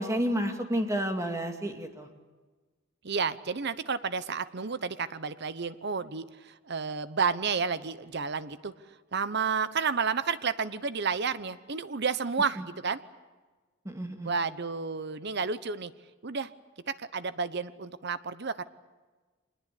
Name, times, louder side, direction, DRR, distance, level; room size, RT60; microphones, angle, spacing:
voice 1, 0.0-2.1 12.6-12.7 13.8-14.3, equal, 15° right, 5 dB, 2.2 m, -30 dB
voice 2, 3.0-8.7 9.1-13.0 14.2-15.9 16.2-16.5 16.9-18.6, right 5 dB, 55° right, 14 dB, 0.9 m, -31 dB
25.0 x 20.5 x 8.5 m, 1.3 s
head